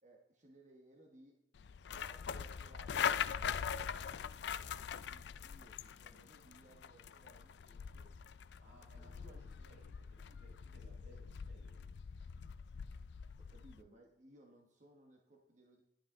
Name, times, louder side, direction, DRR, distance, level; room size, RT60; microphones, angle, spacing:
voice 1, 0.0-1.4 1.9-3.2 4.5-8.1 9.0-9.3 13.4-15.8, right 1 dB, 40° right, 1 dB, 1.2 m, -63 dB
sound 1, 1.6-13.8, left 7 dB, 70° left, 0.4 m, -42 dB
voice 2, 8.6-11.9, right 1 dB, 85° right, -1 dB, 4.6 m, -62 dB
11.5 x 11.5 x 3.7 m, 0.84 s
head